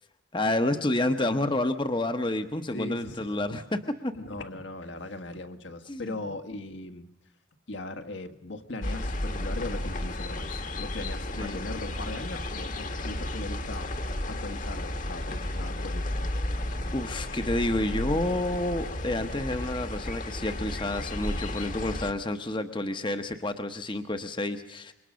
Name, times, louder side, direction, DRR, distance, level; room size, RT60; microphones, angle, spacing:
voice 1, 0.3-4.1 5.9-6.1 11.4-11.6 16.9-24.9, left 1 dB, 25° left, 8 dB, 1.0 m, -29 dB
voice 2, 2.7-3.6 4.1-7.1 7.7-13.9 14.3-16.1, left 2 dB, 70° left, 6 dB, 1.7 m, -39 dB
sound 1, 8.8-22.1, left 1 dB, 40° left, 1.4 m, -33 dB
27.0 x 23.5 x 6.3 m, 0.87 s
head